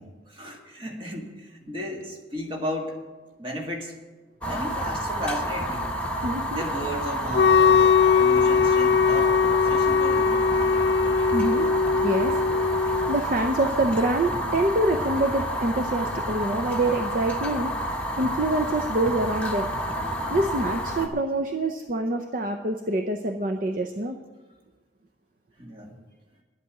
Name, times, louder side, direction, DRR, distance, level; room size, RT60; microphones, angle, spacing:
voice 1, 0.0-3.0 3.4-3.9 4.5-5.9 6.6-10.3 12.8-13.0 19.9-20.3 25.6-26.0, equal, 25° right, 1 dB, 1.8 m, -34 dB
Fire, 4.4-21.1, equal, 5° left, 1.2 m, -29 dB
voice 2, 6.2-6.6 11.3-11.7 11.9-12.4 13.1-19.7 20.3-24.2, right 2 dB, 45° right, 5 dB, 0.6 m, -26 dB
Wind instrument woodwind instrument, 7.3-13.2, left 5 dB, 65° left, 0.5 m, -20 dB
10.5 x 8.3 x 8.9 m, 1.3 s
head